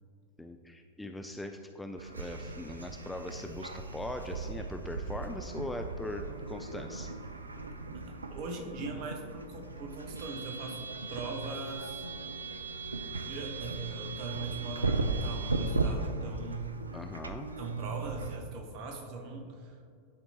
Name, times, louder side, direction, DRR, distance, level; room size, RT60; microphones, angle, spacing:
voice 1, 0.4-7.1 16.9-17.5, left 1 dB, 5° left, 5 dB, 0.3 m, -40 dB
sound 1, 2.0-18.4, right 3 dB, 80° right, 0.4 m, -37 dB
voice 2, 7.9-12.1 13.3-16.7 17.6-19.8, right 3 dB, 45° right, 3 dB, 1.0 m, -40 dB
10.0 x 4.3 x 2.9 m, 2.3 s
figure-of-eight pair, 90°, 0 cm